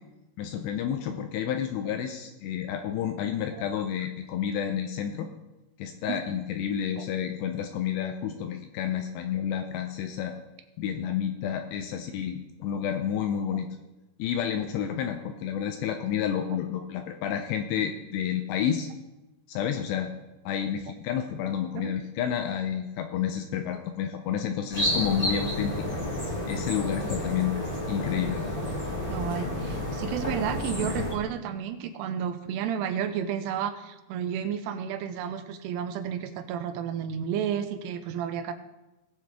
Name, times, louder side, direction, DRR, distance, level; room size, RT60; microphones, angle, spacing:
voice 1, 0.4-5.3 5.8-10.3 10.8-13.7 14.2-18.9 19.5-20.1 20.5-25.9 26.5-27.6 27.9-28.4 30.8-31.1, left 9 dB, 80° left, 6 dB, 2.7 m, -30 dB
sound 1, 24.7-31.1, left 1 dB, 20° left, 1.8 m, -30 dB
voice 2, 29.1-38.5, right 8 dB, 80° right, 9 dB, 2.6 m, -32 dB
19.0 x 7.5 x 3.5 m, 1.0 s
omnidirectional pair, 5.2 m